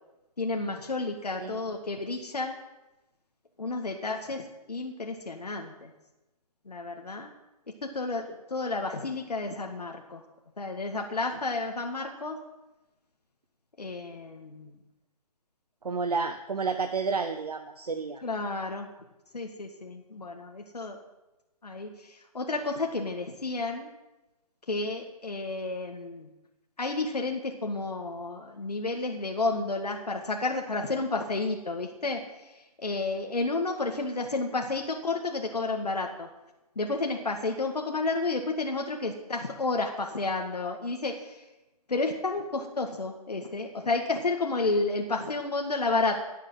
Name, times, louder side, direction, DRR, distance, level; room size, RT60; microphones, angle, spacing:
voice 1, 0.4-2.6 3.6-5.9 6.7-7.3 7.8-10.2 10.6-12.4 13.8-14.8 18.2-18.9 19.3-21.0 21.6-23.9 24.7-26.3 26.8-36.3 36.8-41.4 41.9-46.2, left 3 dB, 80° left, 2 dB, 1.9 m, -31 dB
voice 2, 15.8-18.2, right 4 dB, 75° right, 7 dB, 1.2 m, -30 dB
19.0 x 7.4 x 7.6 m, 1.0 s
figure-of-eight pair, 135°, 20 cm